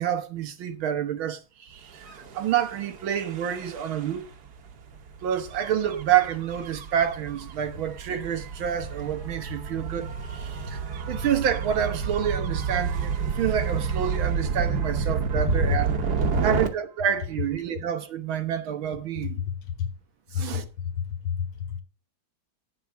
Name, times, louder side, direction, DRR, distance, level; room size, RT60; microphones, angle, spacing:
voice 1, 0.0-2.0 2.3-4.3 5.2-10.8 11.1-15.9 16.4-19.4 20.3-20.7, right 9 dB, 90° right, 2.0 m, -28 dB
Gull seagull / Waves surf / Siren, 1.9-16.7, right 6 dB, 55° right, 1.6 m, -30 dB
voice 2, 15.5-15.8 16.3-16.4 19.2-19.9 20.3-21.8, left 8 dB, 90° left, 2.3 m, -30 dB
10.0 x 7.5 x 4.6 m
omnidirectional pair, 2.1 m